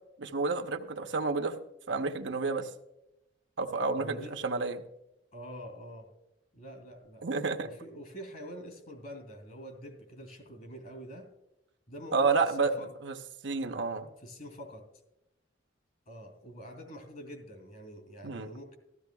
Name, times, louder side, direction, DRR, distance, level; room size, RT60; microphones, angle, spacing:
voice 1, 0.2-1.6 1.9-2.7 3.6-4.2 4.4-4.8 7.2-7.7 12.1-12.7 13.0-13.1 13.4-14.1 18.2-18.5, right 4 dB, 65° right, 6 dB, 0.8 m, -30 dB
voice 2, 4.0-4.4 5.3-6.1 6.5-7.3 7.6-11.3 11.9-12.9 14.2-14.9 16.1-18.8, equal, 45° left, 4 dB, 2.7 m, -46 dB
14.5 x 14.0 x 2.3 m, 0.90 s
head